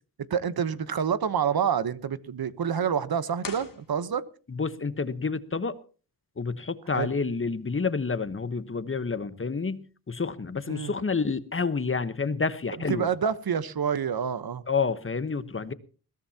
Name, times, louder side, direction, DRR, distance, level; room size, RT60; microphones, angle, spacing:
voice 1, 0.3-4.2 6.9-7.1 10.7-10.9 12.9-14.6, right 7 dB, 65° right, 14 dB, 1.1 m, -27 dB
sound 1, 3.4-4.6, left 5 dB, 55° left, 2.7 m, -42 dB
voice 2, 4.5-5.8 6.4-13.1 14.7-15.7, left 4 dB, 35° left, 13 dB, 1.1 m, -29 dB
21.5 x 16.0 x 2.9 m, 0.38 s
wide cardioid pair, 105°, 39 cm